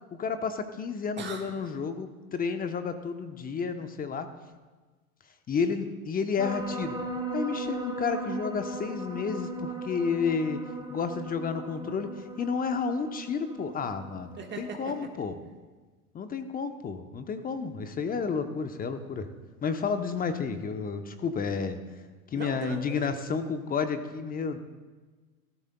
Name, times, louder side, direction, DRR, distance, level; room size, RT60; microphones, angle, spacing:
voice 1, 0.2-4.3 5.5-7.0 7.3-10.6 10.9-15.4 16.1-19.3 19.6-21.8 22.3-24.6, left 5 dB, 20° left, 9 dB, 0.8 m, -31 dB
voice 2, 1.2-1.5 14.4-14.9 22.3-23.2, right 5 dB, 25° right, 2 dB, 1.6 m, -39 dB
sound 1, 6.4-15.1, right 2 dB, 10° right, 1.1 m, -38 dB
17.0 x 14.0 x 2.3 m, 1.3 s
figure-of-eight pair, 85°, 43 cm